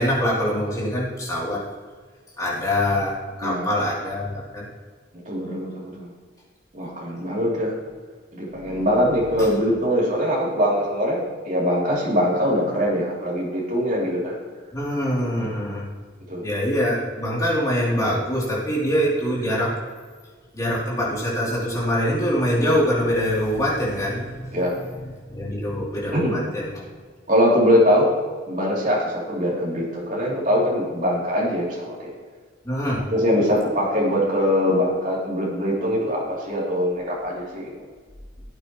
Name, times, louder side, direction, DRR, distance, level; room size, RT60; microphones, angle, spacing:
voice 1, 0.0-1.6 2.4-4.6 8.5-8.9 9.4-9.5 14.7-15.8 16.4-19.7 20.5-24.7 25.3-26.8 32.6-33.0, equal, 20° left, -6 dB, 3.2 m, -24 dB
voice 2, 5.2-6.1 6.7-7.7 8.3-14.3 15.4-15.5 16.3-16.4 24.5-24.7 26.1-26.4 27.3-28.1 28.5-32.1 33.1-37.7, equal, 40° right, -5 dB, 3.2 m, -22 dB
17.0 x 8.7 x 3.2 m, 1.5 s
head